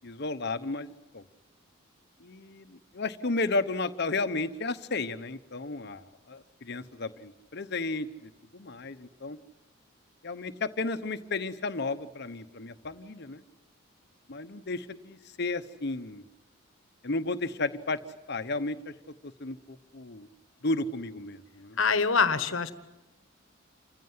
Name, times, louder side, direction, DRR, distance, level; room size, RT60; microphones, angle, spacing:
voice 1, 0.0-1.2 2.2-9.4 10.2-13.4 14.3-16.2 17.0-18.0 18.3-18.9 19.2-20.3 20.6-21.8, left 3 dB, 55° left, 10 dB, 1.0 m, -33 dB
voice 2, 21.8-22.7, left 5 dB, 75° left, 12 dB, 1.3 m, -24 dB
28.0 x 15.5 x 9.6 m, 1.1 s
head